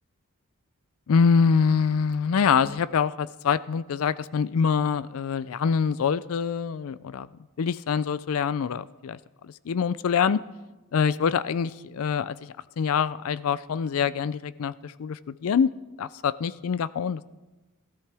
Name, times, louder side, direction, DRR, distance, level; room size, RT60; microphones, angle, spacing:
voice 1, 1.1-7.3 7.6-9.2 9.4-10.4 10.9-15.7 16.0-17.2, left 6 dB, 70° left, 17 dB, 0.4 m, -25 dB
18.0 x 12.5 x 3.4 m, 1.1 s
head